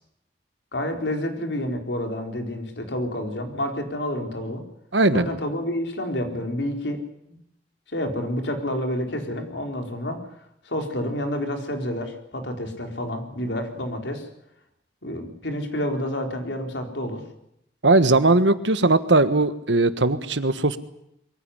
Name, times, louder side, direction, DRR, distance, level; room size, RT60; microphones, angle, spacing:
voice 1, 0.7-4.7 5.1-7.0 7.9-10.2 10.6-14.3 15.0-17.2, left 1 dB, 75° left, 4 dB, 4.2 m, -29 dB
voice 2, 4.9-5.3 17.8-20.8, right 2 dB, 85° right, 12 dB, 1.5 m, -19 dB
22.5 x 16.0 x 10.0 m, 0.79 s
head